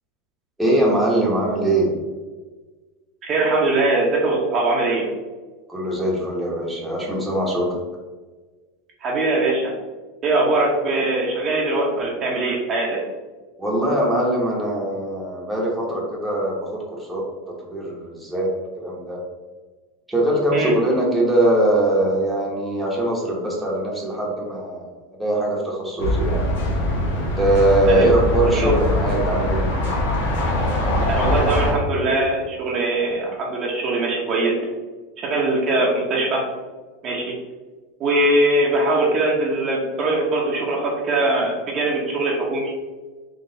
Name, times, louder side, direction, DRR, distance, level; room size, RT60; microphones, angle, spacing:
voice 1, 0.6-1.9 5.7-7.8 13.6-17.2 17.7-18.5 18.7-19.2 20.1-24.9 25.2-26.4 27.1-29.7, right 1 dB, 5° right, -4 dB, 1.1 m, -21 dB
voice 2, 3.2-5.1 9.0-9.7 10.2-13.0 20.5-20.7 27.9-28.1 28.6-28.7 31.1-34.6 35.2-36.4 37.0-37.3 38.0-42.7, right 2 dB, 35° right, -3 dB, 0.9 m, -21 dB
sound 1, 26.0-31.7, left 1 dB, 85° left, 1.4 m, -22 dB
3.9 x 3.1 x 3.9 m, 1.3 s
supercardioid pair, 145°, 0 cm